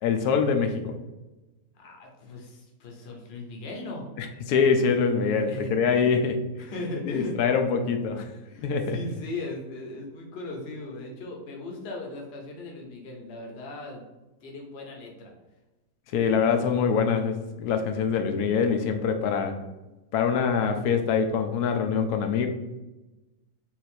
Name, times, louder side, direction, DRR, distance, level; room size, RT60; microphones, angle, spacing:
voice 1, 0.0-1.0 4.2-6.4 7.1-8.3 8.6-9.0 16.1-19.6 20.1-22.5, left 6 dB, 70° left, 6 dB, 1.1 m, -24 dB
voice 2, 1.8-4.1 5.4-6.2 6.6-7.4 8.5-14.0 14.4-15.3, left 2 dB, 45° left, 1 dB, 0.9 m, -38 dB
4.0 x 2.5 x 4.3 m, 1.1 s
omnidirectional pair, 1.8 m